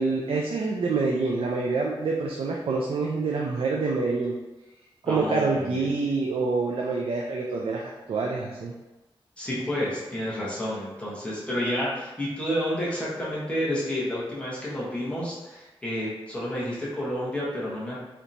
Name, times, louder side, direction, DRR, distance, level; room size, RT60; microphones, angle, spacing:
voice 1, 0.0-4.3 5.0-8.7, right 3 dB, 75° right, -1 dB, 0.4 m, -26 dB
voice 2, 5.0-5.9 9.4-18.0, equal, 10° left, -8 dB, 1.0 m, -30 dB
4.3 x 2.9 x 2.6 m, 1.1 s
wide cardioid pair, 150°, 10 cm